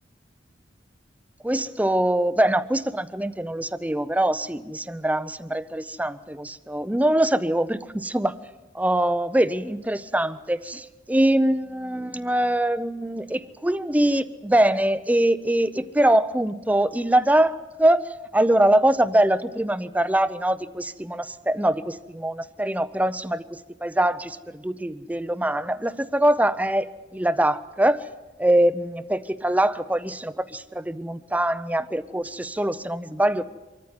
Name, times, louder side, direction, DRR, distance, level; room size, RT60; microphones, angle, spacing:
voice 1, 1.4-8.4 8.7-26.9 27.1-28.1 28.4-33.5, right 1 dB, 10° right, 14 dB, 0.6 m, -23 dB
24.5 x 14.0 x 9.6 m, 1.2 s
head